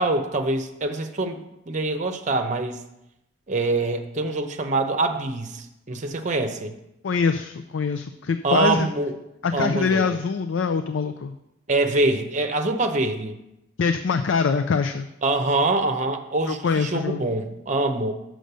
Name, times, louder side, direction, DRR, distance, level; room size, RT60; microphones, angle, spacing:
voice 1, 0.0-1.4 1.7-2.8 3.5-6.7 8.4-9.2 9.5-10.2 11.7-13.4 15.2-18.1, right 2 dB, 40° right, 6 dB, 0.8 m, -24 dB
voice 2, 7.0-8.9 9.4-11.4 13.8-15.1 16.5-17.3, left 5 dB, 70° left, 9 dB, 0.4 m, -24 dB
6.4 x 6.3 x 6.7 m, 0.87 s
head